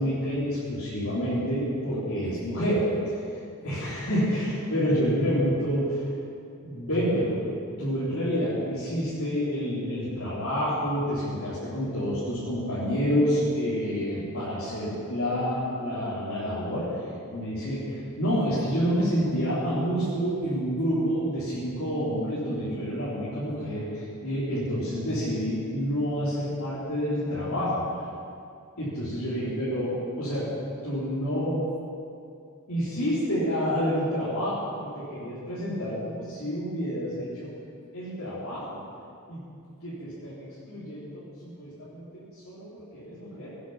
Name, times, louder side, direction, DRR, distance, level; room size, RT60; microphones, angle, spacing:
voice 1, 0.0-6.1 6.6-7.5 7.8-17.0 17.3-27.8 28.8-30.6 30.8-31.6 32.7-37.5 37.9-38.8 39.3-39.4 39.8-43.5, equal, 70° left, -12 dB, 4.1 m, -28 dB
18.0 x 10.0 x 5.9 m, 2.5 s
head